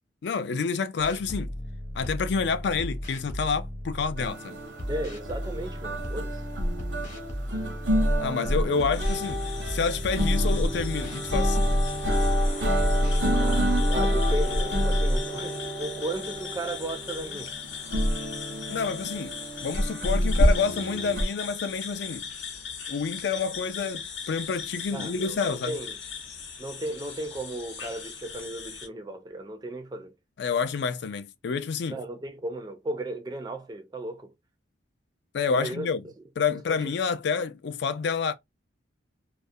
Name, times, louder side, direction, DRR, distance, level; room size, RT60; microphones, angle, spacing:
voice 1, 0.2-1.5 1.9-4.6 8.2-11.6 18.7-22.3 22.9-25.7 30.4-32.0 35.3-36.0 36.4-38.3, left 5 dB, 65° left, 0.3 m, -28 dB
sound 1, 1.0-4.3 4.8-8.3 8.8-13.2, equal, 45° left, 0.8 m, -36 dB
sound 2, 4.2-21.2, equal, 75° right, 0.7 m, -27 dB
voice 2, 4.9-6.4 13.4-17.6 24.9-26.0 26.6-30.1 31.9-34.3 35.5-35.9 36.5-36.8, right 1 dB, 20° right, 0.4 m, -35 dB
sound 3, 8.9-28.9, left 1 dB, 85° left, 0.7 m, -34 dB
2.3 x 2.0 x 2.6 m
head